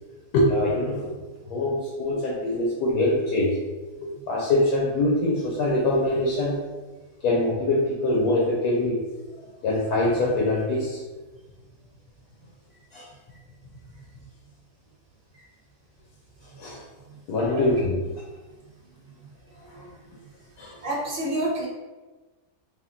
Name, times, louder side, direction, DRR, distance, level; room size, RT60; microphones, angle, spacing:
voice 1, 0.3-1.1 1.5-3.5 4.0-6.6 7.2-9.0 9.4-11.0 12.9-13.0 16.6-16.8 17.3-18.0 19.8-19.9 20.6-20.7, left 1 dB, 70° left, -3 dB, 1.2 m, -23 dB
voice 2, 20.8-21.7, right 1 dB, 45° right, -3 dB, 0.8 m, -27 dB
3.6 x 2.5 x 3.7 m, 1.2 s
omnidirectional pair, 1.8 m